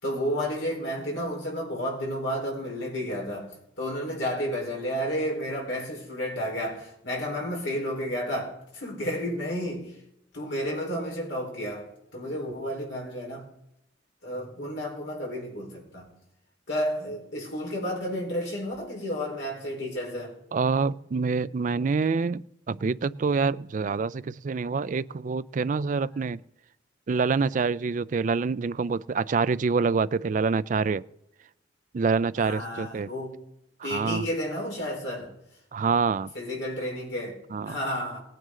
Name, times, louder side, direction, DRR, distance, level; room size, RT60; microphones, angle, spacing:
voice 1, 0.0-10.0 10.3-13.5 14.2-16.1 16.7-20.3 32.4-33.4 33.8-35.3 36.3-38.2, equal, 70° left, 4.2 m, -31 dB
voice 2, 20.5-26.4 27.1-31.0 31.9-33.1 33.8-34.3 35.7-36.3 37.5-37.8, right 4 dB, 45° right, 0.4 m, -26 dB
18.5 x 9.3 x 3.8 m
head